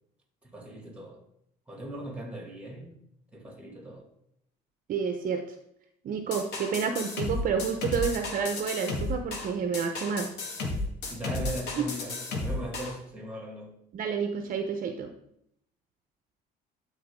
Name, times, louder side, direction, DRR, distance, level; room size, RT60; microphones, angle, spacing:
voice 1, 0.4-1.2 1.7-3.0 3.3-4.1 11.1-13.8, right 1 dB, 5° right, 2.4 m, -39 dB
voice 2, 4.9-5.4 6.0-10.3 11.8-11.9 13.9-15.1, right 6 dB, 55° right, 0.8 m, -29 dB
sound 1, 6.3-12.9, left 2 dB, 80° left, 1.9 m, -33 dB
12.0 x 4.1 x 3.7 m
cardioid pair, 110°, 17 cm